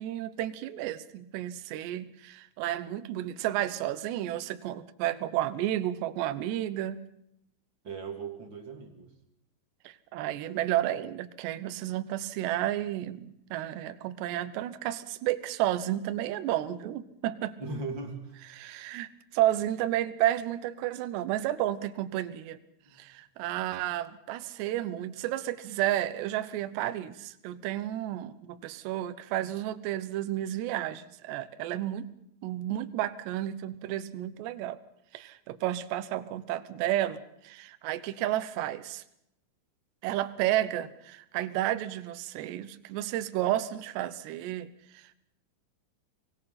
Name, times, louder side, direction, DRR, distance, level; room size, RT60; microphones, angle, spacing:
voice 1, 0.0-7.0 9.8-17.5 18.5-22.6 22.9-32.1 32.4-34.8 35.1-39.0 40.0-45.2, right 13 dB, 75° right, 12 dB, 3.1 m, -32 dB
voice 2, 7.8-9.1 17.6-18.4 22.8-23.0, right 3 dB, 30° right, 3 dB, 3.0 m, -38 dB
24.5 x 20.0 x 5.9 m, 0.76 s
omnidirectional pair, 5.3 m